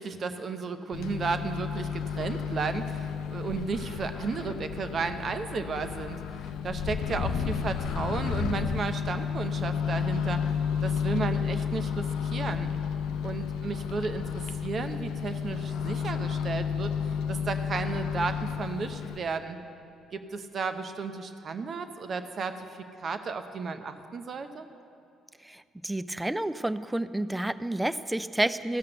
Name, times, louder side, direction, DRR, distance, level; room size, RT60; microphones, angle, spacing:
voice 1, 0.0-10.4 10.8-12.7 13.2-16.9 17.3-19.6 20.1-22.7 23.0-24.6, right 4 dB, 50° right, 9 dB, 0.8 m, -33 dB
Microwave oven, 0.9-19.2, left 7 dB, 75° left, 0.5 m, -32 dB
voice 2, 25.4-28.8, right 1 dB, 10° right, 14 dB, 0.4 m, -30 dB
15.0 x 5.8 x 7.6 m, 2.6 s
supercardioid pair, 65°, 0 cm